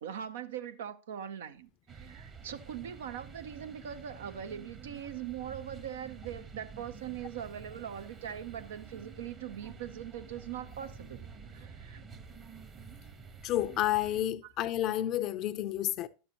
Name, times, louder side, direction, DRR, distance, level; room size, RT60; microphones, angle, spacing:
voice 1, 0.0-12.0 14.4-14.5, right 9 dB, 70° right, 0.6 m, -41 dB
sound 1, 1.9-14.2, right 6 dB, 30° right, 1.1 m, -49 dB
voice 2, 13.4-16.1, left 13 dB, 45° left, 0.5 m, -30 dB
11.5 x 7.1 x 2.9 m
hypercardioid pair, 90°, 0 cm